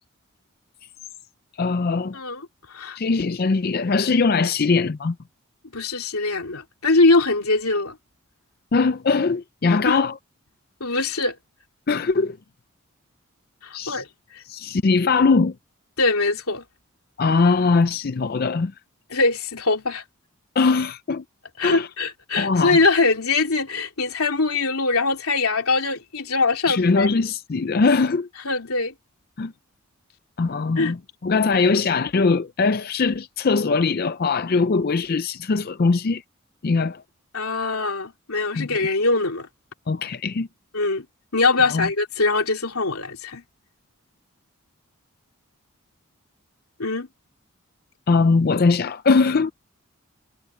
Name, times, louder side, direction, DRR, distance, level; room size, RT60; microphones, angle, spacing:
voice 1, 1.6-2.2 3.0-5.2 8.7-10.1 11.9-12.4 13.7-14.0 14.5-15.6 17.2-18.7 20.6-21.2 21.6-21.9 22.4-22.8 26.7-28.3 29.4-29.5 30.4-31.0 31.2-36.2 36.6-37.0 38.6-38.7 39.9-40.5 41.7-41.9 48.1-49.5, left 4 dB, 45° left, 0.5 m, -21 dB
voice 2, 5.7-8.0 9.7-10.0 10.8-11.4 13.6-14.1 14.3-14.4 16.0-16.6 19.1-20.0 21.6-27.1 28.4-28.9 30.8-30.9 37.3-39.5 40.7-41.0 41.3-43.4 46.8-47.1, left 3 dB, 90° left, 3.0 m, -22 dB
head